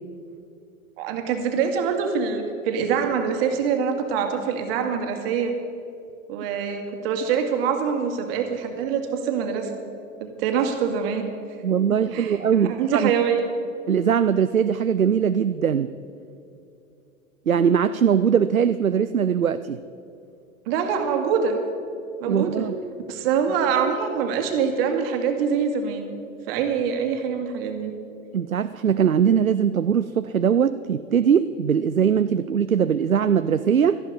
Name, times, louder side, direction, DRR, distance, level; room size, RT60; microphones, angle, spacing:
voice 1, 1.0-5.5 6.3-9.7 10.2-11.3 11.9-13.4 20.7-21.6 22.2-22.6 23.1-26.1 26.5-27.9, right 6 dB, 45° right, 4 dB, 2.2 m, -24 dB
voice 2, 11.6-13.1 13.9-15.9 17.5-19.8 22.3-22.7 28.3-34.0, right 7 dB, 85° right, 12 dB, 0.5 m, -21 dB
17.5 x 13.5 x 5.4 m, 2.6 s
figure-of-eight pair, 90°, 40 cm